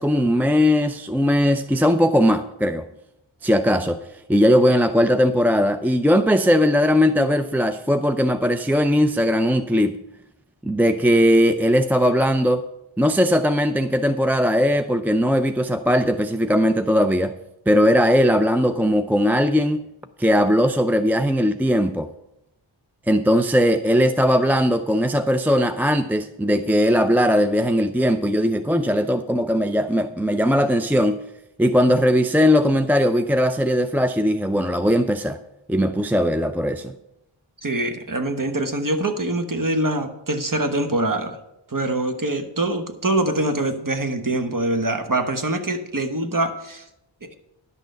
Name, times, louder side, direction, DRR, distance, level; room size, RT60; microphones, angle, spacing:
voice 1, 0.0-2.8 3.4-4.0 4.3-10.0 10.6-12.6 13.0-17.3 17.7-19.8 20.2-22.1 23.1-31.2 31.6-35.4 35.7-36.9, equal, 5° right, 9 dB, 0.3 m, -19 dB
voice 2, 37.6-41.4 41.7-46.8 47.2-47.4, right 2 dB, 40° right, 7 dB, 1.2 m, -24 dB
11.0 x 6.3 x 6.6 m, 0.86 s
wide cardioid pair, 45°, 49 cm